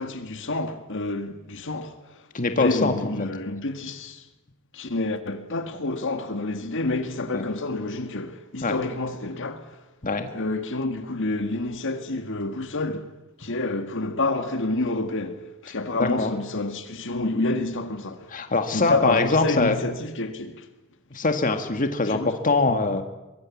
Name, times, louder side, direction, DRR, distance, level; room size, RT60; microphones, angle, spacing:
voice 1, 0.0-2.2 2.6-4.3 4.7-9.7 10.3-13.1 13.4-18.4 18.7-20.7 22.1-22.3, left 2 dB, 60° left, 1.8 m, -28 dB
voice 2, 2.3-2.9 7.3-7.5 8.6-8.8 10.0-10.3 16.0-16.3 18.3-19.8 21.1-23.0, left 3 dB, 35° left, 1.8 m, -23 dB
23.5 x 21.5 x 8.5 m
head